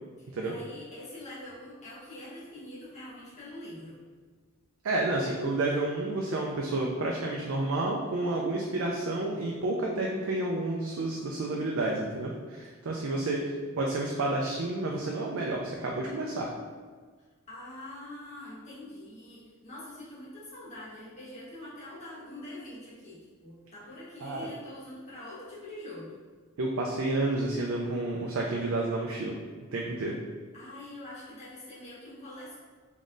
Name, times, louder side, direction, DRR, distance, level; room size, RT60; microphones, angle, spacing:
voice 1, 0.2-4.0 13.1-13.8 17.5-26.2 30.5-32.6, left 1 dB, 30° left, -9 dB, 1.2 m, -45 dB
voice 2, 4.8-16.5 24.2-24.5 26.6-29.4 29.7-30.2, right 2 dB, 65° right, -1 dB, 0.4 m, -30 dB
3.7 x 3.6 x 2.5 m, 1.5 s
head